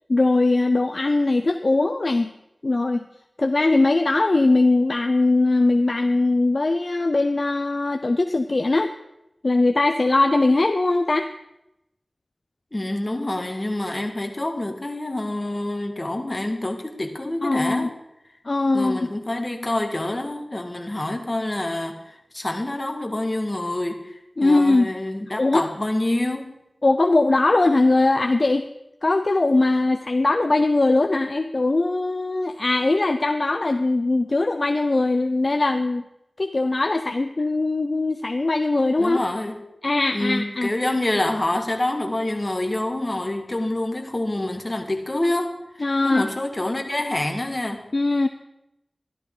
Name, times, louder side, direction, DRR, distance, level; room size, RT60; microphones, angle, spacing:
voice 1, 0.1-2.3 2.6-3.1 3.4-8.9 9.4-11.3 17.4-17.9 18.5-19.0 24.4-24.9 25.4-25.7 26.8-28.7 29.0-36.0 36.4-39.2 39.8-40.7 45.8-46.2 47.9-48.3, left 2 dB, 55° left, 7 dB, 0.6 m, -20 dB
voice 2, 12.7-17.9 18.7-26.6 39.0-39.6 40.1-47.9, left 1 dB, 35° left, 4 dB, 1.8 m, -27 dB
13.0 x 12.0 x 3.8 m, 0.87 s
cardioid pair, 40°, 0 cm